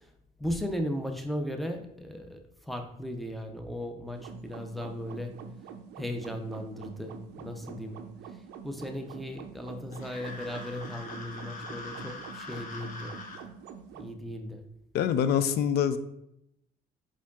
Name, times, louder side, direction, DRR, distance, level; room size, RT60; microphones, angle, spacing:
voice 1, 0.4-5.4 6.0-8.1 8.6-13.2 14.0-14.6, equal, ahead, 4 dB, 0.5 m, -36 dB
sound 1, 4.1-14.1, right 7 dB, 85° right, 0.4 m, -46 dB
sound 2, 9.9-13.4, left 3 dB, 50° left, 0.9 m, -43 dB
voice 2, 14.9-16.0, left 8 dB, 70° left, 12 dB, 0.4 m, -25 dB
4.6 x 4.3 x 2.4 m, 0.77 s
cardioid pair, 110°, 17 cm